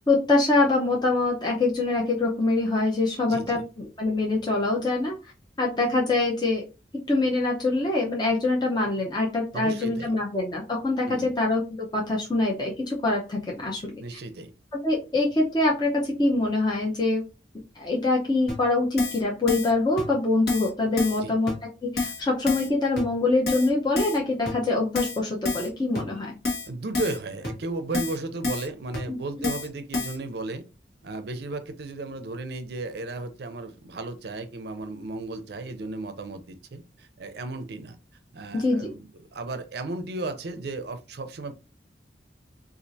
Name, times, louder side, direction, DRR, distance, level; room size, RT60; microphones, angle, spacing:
voice 1, 0.1-5.1 5.6-6.6 7.1-13.9 14.7-17.2 17.8-21.5 21.8-26.4 29.1-29.2 38.5-38.9, left 2 dB, 25° left, 0.6 m, -24 dB
voice 2, 3.3-3.6 9.5-10.2 11.0-11.3 14.0-14.5 21.2-21.3 26.7-30.6 31.0-38.0 38.3-39.0 39.3-41.5, right 2 dB, 60° right, 0.5 m, -34 dB
Keyboard (musical), 18.5-18.6 19.0-19.2 19.5-19.7 20.0-20.1 20.5-20.7 21.0-21.2 21.5-21.6 22.0-22.2 22.5-22.7 23.0-23.1 23.5-23.7 24.0-24.2 24.5-24.6 25.0-25.2 25.5-25.7 26.0-26.1 26.5-26.7 27.0-27.2 27.4-27.5 27.9-28.2 28.4-28.7 28.9-29.0 29.4-29.7 29.9-30.2, left 3 dB, 60° left, 1.2 m, -28 dB
4.3 x 2.4 x 2.6 m
head